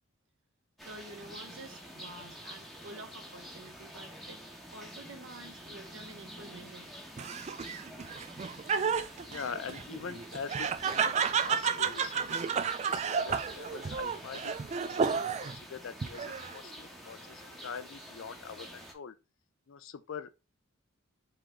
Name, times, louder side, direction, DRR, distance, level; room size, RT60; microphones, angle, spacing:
sound 1, 0.8-18.9, equal, ahead, 0.8 m, -48 dB
voice 1, 0.8-4.4 4.7-6.9, right 2 dB, 60° right, 1.0 m, -49 dB
Laughter, 7.2-15.6 16.0-16.7, right 6 dB, 30° right, 0.3 m, -32 dB
voice 2, 9.3-14.5 14.8-19.1 19.7-20.3, left 6 dB, 65° left, 0.4 m, -43 dB
4.8 x 3.0 x 3.7 m
head